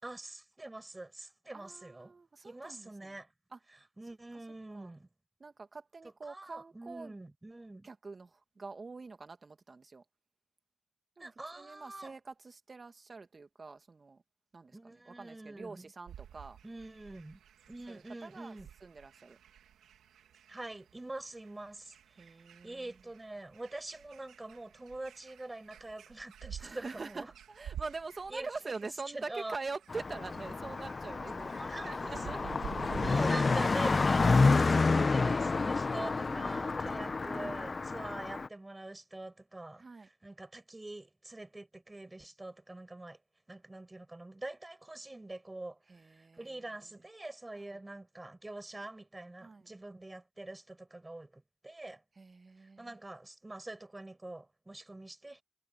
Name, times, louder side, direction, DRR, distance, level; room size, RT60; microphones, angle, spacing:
voice 1, 0.0-2.1 2.4-3.3 3.7-5.1 6.2-7.9 11.2-12.2 14.7-15.9 16.6-17.4 17.7-18.7 20.5-22.4 22.6-27.3 28.3-28.5 29.1-29.6 31.6-32.3 33.0-43.2 43.5-45.8 46.2-52.0 52.6-55.4, right 2 dB, 20° right, 7.3 m, -45 dB
voice 2, 1.5-3.2 3.5-3.6 4.3-4.4 4.7-4.9 5.4-7.1 7.8-10.0 11.2-14.2 14.5-16.6 17.9-19.4 22.2-23.1 26.6-32.5 34.9-35.2 36.2-37.5 39.8-40.1 45.9-47.1 47.5-47.8 49.4-49.8 52.1-53.0, right 4 dB, 40° right, 2.4 m, -45 dB
sound 1, 16.1-35.6, right 9 dB, 85° right, 3.3 m, -51 dB
Car passing by, 29.9-38.5, left 4 dB, 40° left, 1.0 m, -29 dB
cardioid pair, 60°, 0 cm